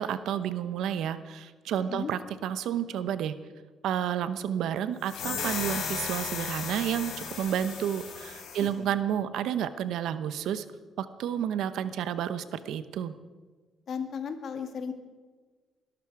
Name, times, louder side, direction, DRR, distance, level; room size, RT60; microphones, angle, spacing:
voice 1, 0.0-3.3 3.8-10.6 11.0-13.1, right 9 dB, 80° right, 13 dB, 0.9 m, -31 dB
sound 1, 5.0-8.7, left 6 dB, 80° left, 4.5 m, -35 dB
voice 2, 13.9-14.9, left 6 dB, 60° left, 7 dB, 2.0 m, -35 dB
20.5 x 13.0 x 4.8 m, 1.4 s
cardioid pair, 90°, 0 cm